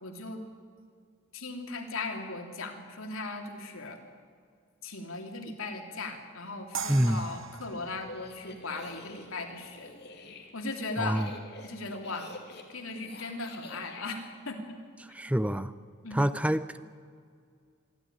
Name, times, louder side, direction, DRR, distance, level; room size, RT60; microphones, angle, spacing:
voice 1, 0.0-0.4 1.3-4.0 4.8-9.9 10.5-11.2 11.6-12.3 12.7-14.8 16.0-16.4, left 3 dB, 90° left, 3 dB, 3.1 m, -38 dB
sound 1, 6.7-9.8, right 6 dB, 75° right, 1.3 m, -42 dB
voice 2, 6.9-7.2 11.0-11.3 15.1-15.7 16.1-16.8, right 1 dB, 5° right, 14 dB, 0.5 m, -27 dB
sound 2, 7.9-14.1, left 2 dB, 50° left, 2.7 m, -48 dB
25.5 x 12.5 x 10.0 m, 2.2 s
head